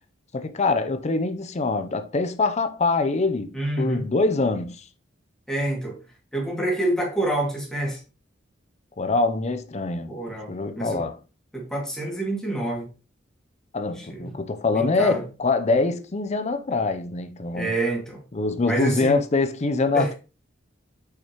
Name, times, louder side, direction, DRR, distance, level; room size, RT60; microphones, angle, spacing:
voice 1, 0.3-4.8 9.0-11.2 13.7-17.7 18.3-20.1, left 3 dB, 35° left, 0.6 m, -24 dB
voice 2, 3.5-4.0 5.5-6.0 6.3-8.0 10.1-11.0 11.5-12.9 14.0-14.3 14.7-15.2 17.5-18.2 18.6-19.2 19.9-20.1, right 1 dB, 5° left, 2.2 m, -27 dB
6.6 x 5.8 x 3.0 m
head